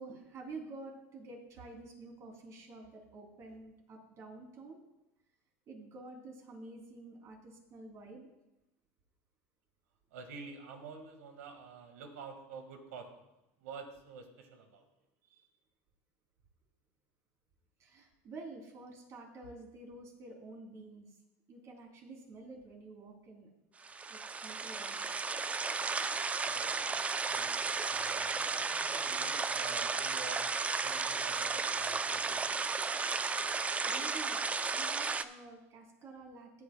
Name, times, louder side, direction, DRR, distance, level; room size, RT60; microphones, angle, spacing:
voice 1, 0.0-4.8 5.7-8.3 15.3-15.5 17.8-21.0 21.5-23.5 24.1-25.1 33.8-34.4 34.7-36.6, right 3 dB, 40° right, 1 dB, 2.9 m, -49 dB
voice 2, 10.1-13.2 13.6-14.8 26.4-30.5 30.8-32.6, right 5 dB, 85° right, 6 dB, 1.7 m, -49 dB
sound 1, 23.8-35.2, right 4 dB, 20° right, 0.4 m, -34 dB
15.0 x 8.8 x 2.2 m, 0.92 s
supercardioid pair, 110°, 8 cm